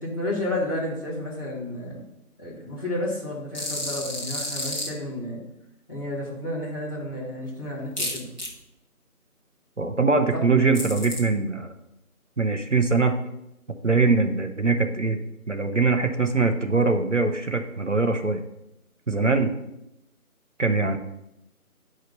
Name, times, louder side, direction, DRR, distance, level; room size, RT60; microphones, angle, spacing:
voice 1, 0.0-2.0 2.4-5.4 5.9-8.3 10.3-10.4, left 1 dB, 15° left, -11 dB, 1.9 m, -31 dB
sound 1, 3.5-4.9 8.0-8.5 10.7-11.2, left 1 dB, 30° left, 1.4 m, -31 dB
voice 2, 9.8-11.7 12.4-13.2 13.8-15.2 15.5-18.4 19.1-19.5 20.6-21.0, right 3 dB, 55° right, 6 dB, 0.8 m, -22 dB
9.8 x 5.1 x 4.0 m, 0.85 s
figure-of-eight pair, 175°, 44 cm